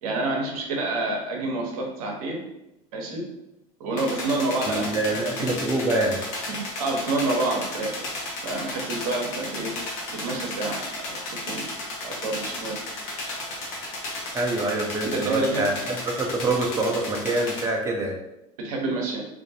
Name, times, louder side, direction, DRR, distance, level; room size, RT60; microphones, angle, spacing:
voice 1, 0.0-2.4 2.9-3.2 3.8-5.5 6.5-8.1 8.4-9.7 10.1-11.2 11.4-11.7 12.0-12.8 15.0-15.7 18.6-19.3, right 2 dB, 80° right, 0 dB, 0.7 m, -28 dB
sound 1, 4.0-17.6, left 2 dB, 70° left, 0.8 m, -34 dB
voice 2, 4.7-6.2 14.3-18.2, right 2 dB, 15° right, 0 dB, 0.5 m, -25 dB
2.4 x 2.1 x 2.7 m, 0.89 s
hypercardioid pair, 85°, 18 cm